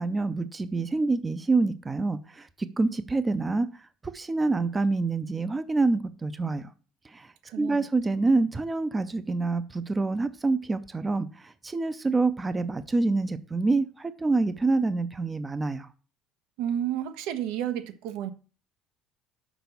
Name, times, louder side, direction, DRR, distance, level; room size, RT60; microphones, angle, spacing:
voice 1, 0.0-3.7 4.0-6.7 7.0-15.9, right 3 dB, 15° right, 0.5 m, -27 dB
voice 2, 16.6-18.3, right 10 dB, 85° right, 1.0 m, -31 dB
6.0 x 5.7 x 6.9 m
cardioid pair, 155°, 0 cm